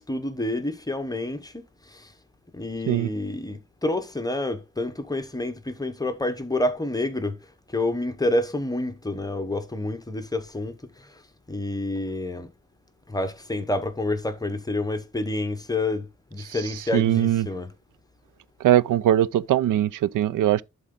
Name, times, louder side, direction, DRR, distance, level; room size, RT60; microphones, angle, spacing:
voice 1, 0.0-2.1 2.5-11.2 11.5-12.5 13.1-17.7, left 2 dB, 10° left, 0.9 m, -29 dB
voice 2, 16.9-17.5 18.6-20.6, right 12 dB, 85° right, 0.5 m, -21 dB
11.5 x 3.9 x 3.7 m
wide cardioid pair, 135°, 31 cm